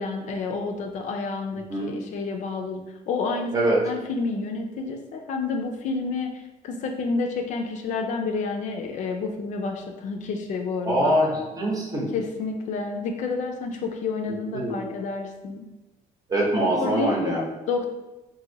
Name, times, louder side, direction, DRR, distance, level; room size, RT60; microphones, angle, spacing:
voice 1, 0.0-2.8 3.1-6.3 6.6-11.2 12.1-15.6 16.7-17.9, left 4 dB, 55° left, 3 dB, 0.4 m, -29 dB
voice 2, 10.8-12.1 14.5-14.8 16.3-17.4, right 1 dB, 25° right, -2 dB, 0.8 m, -23 dB
2.8 x 2.6 x 3.9 m, 1.0 s
cardioid pair, 155°, 14 cm